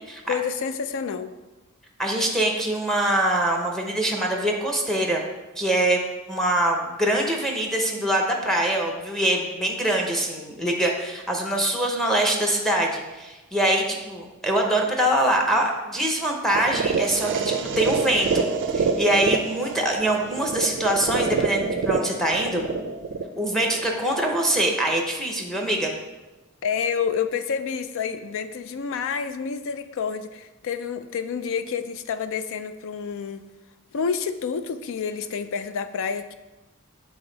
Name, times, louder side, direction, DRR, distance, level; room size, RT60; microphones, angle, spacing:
voice 1, 0.2-1.3 26.6-33.4 33.9-36.3, left 6 dB, 65° left, 11 dB, 0.4 m, -29 dB
voice 2, 2.0-5.2 5.6-6.0 6.3-18.5 18.7-22.7 23.4-25.9, right 1 dB, ahead, 1 dB, 0.7 m, -24 dB
sound 1, 16.5-24.5, right 4 dB, 60° right, 0.4 m, -27 dB
7.1 x 3.8 x 3.9 m, 1.1 s
head